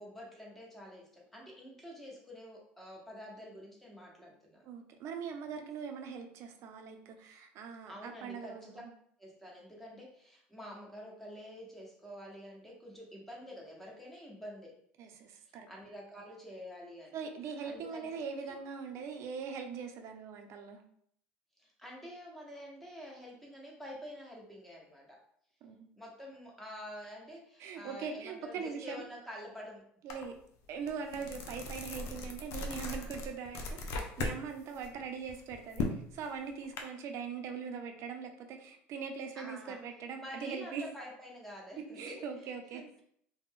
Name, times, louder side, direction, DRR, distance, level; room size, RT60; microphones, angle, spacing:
voice 1, 0.0-4.6 7.9-8.8 9.2-14.7 15.5-17.2 17.6-18.1 18.3-18.6 21.6-25.2 26.0-29.8 32.8-33.1 39.3-39.8 40.1-43.0, equal, 5° left, -3 dB, 1.0 m, -48 dB
voice 2, 4.6-8.9 15.0-15.7 17.1-20.8 25.6-25.9 27.6-29.0 30.0-30.3 30.7-40.9 42.0-42.8, right 6 dB, 60° right, 5 dB, 0.5 m, -41 dB
sound 1, 30.1-30.2 30.6-34.4 34.7-36.8, left 2 dB, 60° left, 0.5 m, -38 dB
2.4 x 2.1 x 3.6 m, 0.66 s
supercardioid pair, 85°, 5 cm